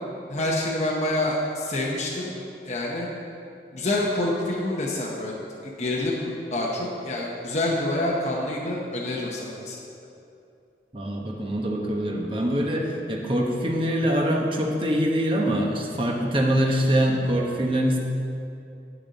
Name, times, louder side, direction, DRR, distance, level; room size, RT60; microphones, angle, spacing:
voice 1, 0.3-2.3 2.6-3.1 3.7-5.3 5.6-9.8, left 1 dB, 40° left, -3 dB, 0.9 m, -27 dB
voice 2, 10.9-18.0, equal, 30° right, -1 dB, 1.1 m, -24 dB
10.5 x 7.9 x 4.1 m, 2.6 s
head